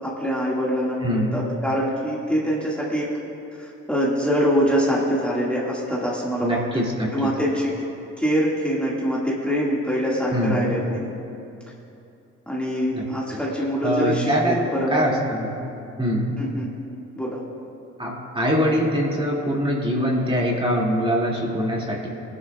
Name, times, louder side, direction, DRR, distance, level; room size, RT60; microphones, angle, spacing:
voice 1, 0.0-3.1 3.6-6.8 7.1-7.8 8.2-11.1 12.5-15.0 15.6-15.7 16.4-16.7 17.2-17.4, equal, 5° left, -7 dB, 1.9 m, -24 dB
voice 2, 1.0-1.4 6.4-7.3 10.3-10.7 12.9-13.4 13.8-15.5 16.0-16.3 18.0-22.1, equal, 20° right, -3 dB, 2.4 m, -23 dB
20.5 x 11.0 x 2.4 m, 2.7 s
cardioid pair, 90°, 30 cm